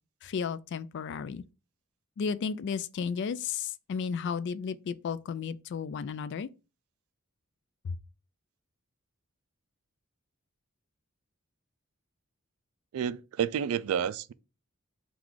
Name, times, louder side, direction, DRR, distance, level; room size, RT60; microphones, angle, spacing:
voice 1, 0.2-1.4 2.2-6.5 7.8-8.0, left 6 dB, 55° left, 0.3 m, -33 dB
voice 2, 12.9-14.3, right 8 dB, 75° right, 0.3 m, -30 dB
3.9 x 2.3 x 4.5 m
head